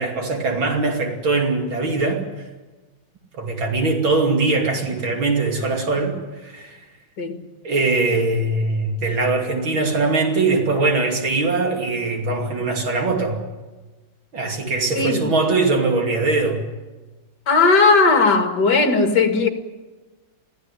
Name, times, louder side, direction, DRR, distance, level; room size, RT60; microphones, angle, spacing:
voice 1, 0.0-2.5 3.4-6.8 7.6-13.4 14.3-16.6, right 3 dB, 85° right, 2 dB, 3.6 m, -21 dB
voice 2, 17.5-19.5, left 4 dB, 55° left, 5 dB, 2.6 m, -16 dB
23.0 x 15.5 x 10.0 m, 1.2 s
omnidirectional pair, 2.1 m